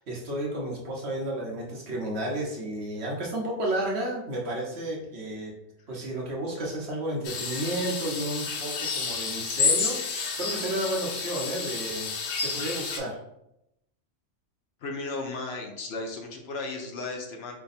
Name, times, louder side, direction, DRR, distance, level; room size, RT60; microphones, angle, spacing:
voice 1, 0.0-5.5 5.9-12.1 12.4-13.2, right 1 dB, 60° right, -2 dB, 1.1 m, -32 dB
sound 1, 7.2-13.0, left 5 dB, 90° left, 1.1 m, -30 dB
voice 2, 14.8-17.6, left 3 dB, 65° left, 2 dB, 0.8 m, -35 dB
3.4 x 2.2 x 4.0 m, 0.83 s
omnidirectional pair, 1.3 m